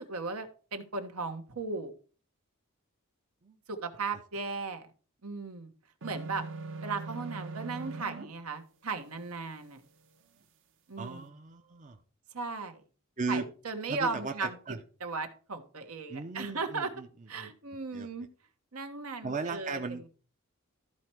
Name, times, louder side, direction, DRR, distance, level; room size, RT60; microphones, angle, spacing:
voice 1, 0.0-1.9 3.7-4.9 5.2-5.7 6.0-6.5 6.8-9.8 10.9-11.3 12.3-12.8 13.3-16.9 17.3-18.3 18.7-20.0, right 4 dB, 75° right, 7 dB, 1.3 m, -37 dB
sound 1, 6.0-8.3, right 3 dB, 60° right, 1.1 m, -40 dB
voice 2, 11.0-12.0 13.2-13.4 13.9-14.8 16.1-17.1 17.4-17.5 17.9-18.1 19.2-20.1, right 4 dB, 35° right, 5 dB, 0.7 m, -36 dB
13.0 x 4.4 x 4.7 m, 0.39 s
head